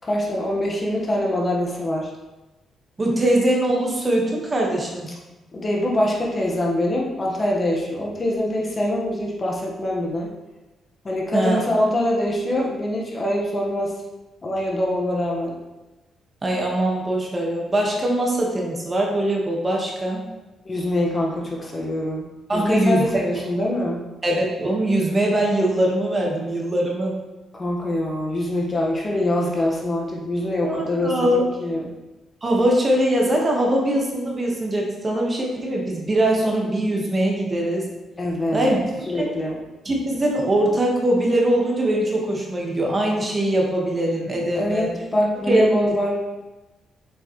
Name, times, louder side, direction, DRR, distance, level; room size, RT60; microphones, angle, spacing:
voice 1, 0.0-2.1 5.5-10.3 11.0-13.9 14.4-15.5 20.6-22.3 22.5-24.0 27.5-31.9 38.2-38.8 39.1-39.6 44.5-46.3, left 1 dB, 35° left, -2 dB, 1.5 m, -24 dB
voice 2, 3.0-5.1 11.3-11.6 16.4-20.3 22.5-23.1 24.2-27.1 30.6-31.4 32.4-37.9 38.5-39.3 39.8-44.9 45.5-45.7, right 1 dB, 30° right, -1 dB, 1.5 m, -22 dB
7.0 x 5.5 x 3.2 m, 1.1 s
cardioid pair, 85°, 0 cm